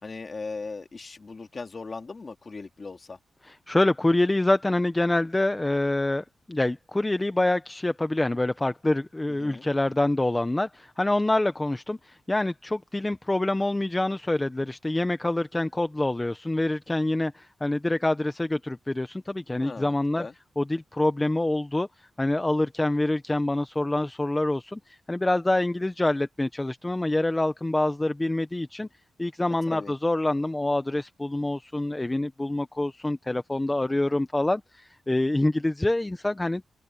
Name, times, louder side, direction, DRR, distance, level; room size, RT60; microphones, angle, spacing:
voice 1, 0.0-3.2 9.4-9.7 19.6-20.3 29.7-29.9, left 4 dB, 30° left, 2.8 m, -38 dB
voice 2, 3.4-20.3 20.6-21.9 22.2-28.9 29.2-36.6, left 2 dB, 10° left, 0.7 m, -26 dB
wide cardioid pair, 165°, 0 cm